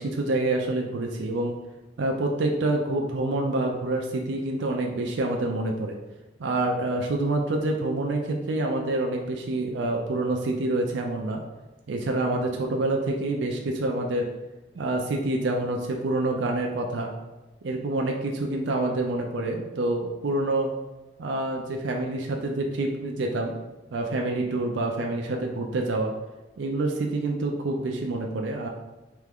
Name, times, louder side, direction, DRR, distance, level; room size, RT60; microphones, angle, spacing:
voice 1, 0.0-1.6 2.0-6.0 6.4-11.4 11.9-14.3 14.8-17.1 17.6-20.7 21.2-23.5 23.9-26.1 26.6-28.7, right 2 dB, 75° right, 1 dB, 0.4 m, -27 dB
3.5 x 3.3 x 3.5 m, 1.1 s
head